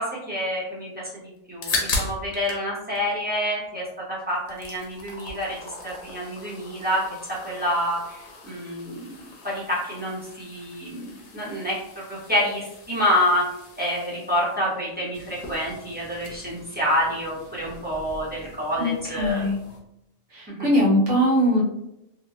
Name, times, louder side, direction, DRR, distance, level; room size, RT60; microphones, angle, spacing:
voice 1, 0.0-5.6 5.8-13.5 13.8-19.4 20.5-20.7, equal, 10° right, -7 dB, 0.6 m, -28 dB
sound 1, 1.4-2.7 2.9-4.0 4.3-19.8, left 3 dB, 60° left, 0.9 m, -38 dB
voice 2, 18.8-19.6 20.3-21.6, equal, 65° right, -5 dB, 1.3 m, -21 dB
2.9 x 2.5 x 2.4 m, 0.85 s
omnidirectional pair, 1.4 m